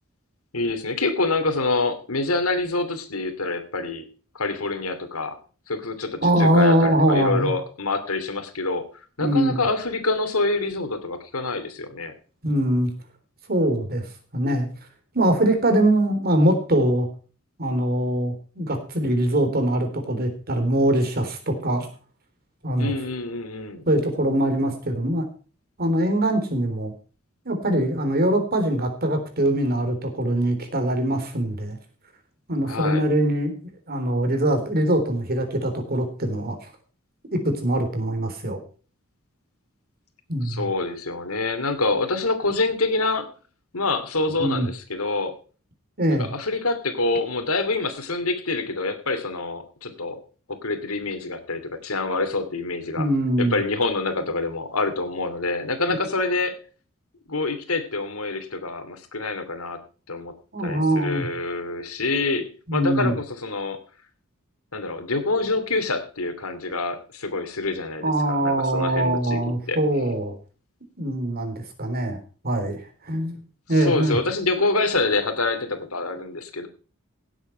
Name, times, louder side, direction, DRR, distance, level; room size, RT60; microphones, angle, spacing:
voice 1, 0.5-4.0 4.3-5.4 5.7-8.8 9.2-12.1 22.8-23.8 32.7-33.0 40.4-43.3 43.7-45.3 46.1-50.2 50.5-53.1 53.4-56.6 57.3-59.8 60.1-60.3 60.6-63.8 64.7-69.4 69.7-69.8 73.8-76.7, left 3 dB, 90° left, 9 dB, 2.6 m, -26 dB
voice 2, 6.2-7.5 9.2-9.6 12.4-12.9 13.5-14.1 14.3-14.7 15.1-17.1 17.6-21.9 22.6-22.9 23.9-25.3 25.8-26.9 27.5-31.8 32.5-33.6 33.9-36.6 37.3-38.6 40.3-40.7 44.4-44.7 46.0-46.3 53.0-53.6 60.5-61.3 62.7-63.1 68.0-70.3 71.0-73.3 73.7-74.2, right 1 dB, 45° right, 6 dB, 3.6 m, -22 dB
17.0 x 8.2 x 4.5 m, 0.38 s
head